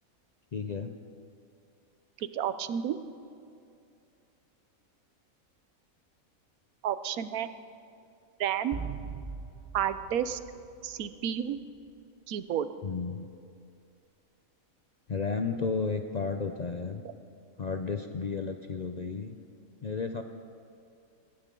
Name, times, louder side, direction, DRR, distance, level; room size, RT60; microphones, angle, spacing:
voice 1, 0.5-0.9 12.8-13.3 15.1-17.0 17.6-19.4 19.8-20.2, left 4 dB, 50° left, 6 dB, 0.5 m, -33 dB
voice 2, 2.3-3.0 6.8-7.5 8.4-8.8 9.7-10.4 10.8-11.6 12.3-12.7, right 9 dB, 90° right, 13 dB, 1.2 m, -30 dB
sound 1, 8.7-11.6, right 5 dB, 35° right, 0.5 m, -41 dB
19.0 x 18.0 x 3.8 m, 2.5 s
omnidirectional pair, 1.5 m